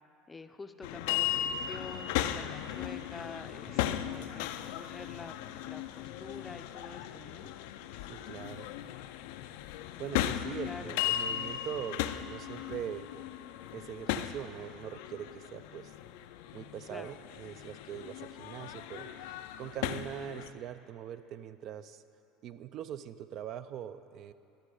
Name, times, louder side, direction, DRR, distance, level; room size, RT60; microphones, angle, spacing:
voice 1, 0.3-7.5 10.6-10.9 16.9-17.1, left 3 dB, 15° left, 9 dB, 0.5 m, -47 dB
sound 1, 0.8-20.5, left 11 dB, 75° left, 0.3 m, -37 dB
voice 2, 3.8-4.3 8.1-8.7 10.0-13.1 13.7-15.9 16.5-19.3 19.6-22.0 22.4-24.3, right 9 dB, 55° right, 12 dB, 0.4 m, -42 dB
11.5 x 7.5 x 4.9 m, 2.8 s
supercardioid pair, 100°, 0 cm